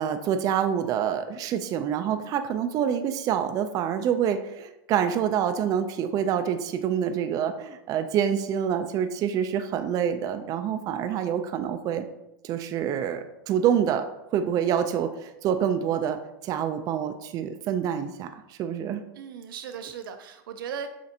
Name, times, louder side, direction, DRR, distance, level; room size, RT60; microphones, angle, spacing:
voice 1, 0.0-12.0 12.4-14.1 14.3-19.0, right 8 dB, 35° right, 8 dB, 0.3 m, -27 dB
voice 2, 19.1-20.9, right 7 dB, 80° right, 7 dB, 0.6 m, -37 dB
7.1 x 2.5 x 2.7 m, 0.87 s
supercardioid pair, 125°, 11 cm